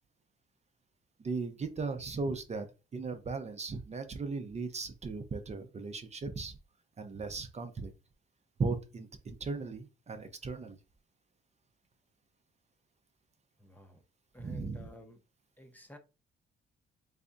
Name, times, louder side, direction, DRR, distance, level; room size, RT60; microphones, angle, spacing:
voice 1, 1.2-2.7 2.9-6.6 7.0-7.9 8.6-10.8 14.4-14.9, right 4 dB, 35° right, 0.6 m, -37 dB
voice 2, 13.6-14.0 14.3-15.2 15.6-16.0, left 1 dB, 10° left, 0.7 m, -51 dB
3.5 x 3.3 x 2.6 m
cardioid pair, 90°, 20 cm